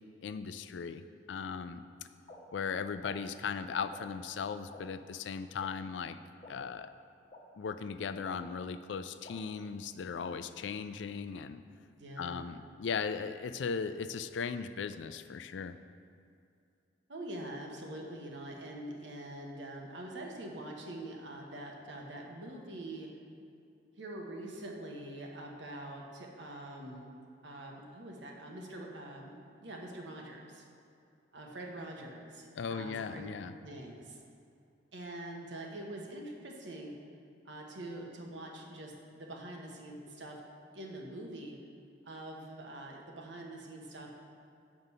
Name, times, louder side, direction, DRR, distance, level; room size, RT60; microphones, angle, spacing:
voice 1, 0.2-1.0 1.3-1.8 2.5-6.2 6.5-6.9 7.6-11.6 12.2-15.8 32.6-33.5, left 6 dB, 80° left, 11 dB, 0.4 m, -37 dB
sound 1, 2.3-2.4 3.0-3.1 3.9-4.0 4.7-4.8 5.6-5.7 6.4-6.5 7.3-7.4 8.2-8.4 9.2-9.3, left 2 dB, 35° left, 1.1 m, -50 dB
voice 2, 12.0-12.4 17.1-23.1 24.0-27.1 27.4-30.6 31.3-33.3 33.6-34.2 34.9-36.9 37.4-40.4 40.7-41.6 42.0-44.1, right 1 dB, 85° right, 0 dB, 1.2 m, -44 dB
8.0 x 5.2 x 5.5 m, 2.5 s
head